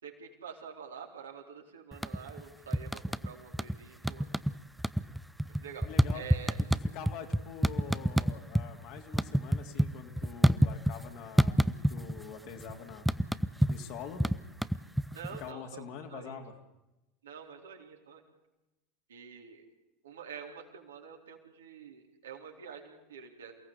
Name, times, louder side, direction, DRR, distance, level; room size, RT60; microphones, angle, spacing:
voice 1, 0.0-4.3 5.6-6.6 15.1-16.4 17.2-18.2 19.1-19.7 20.0-23.6, right 7 dB, 70° right, 2 dB, 4.0 m, -47 dB
sound 1, 1.9-2.4 2.7-3.8 4.0-4.5 4.8-8.7 9.0-11.1 11.4-12.2 12.5-15.4, right 1 dB, ahead, 0.8 m, -27 dB
voice 2, 5.8-6.3 6.7-13.1 13.7-14.2 15.4-16.5, left 7 dB, 50° left, 3 dB, 3.1 m, -45 dB
28.5 x 17.5 x 8.4 m, 0.99 s
figure-of-eight pair, 75°, 0 cm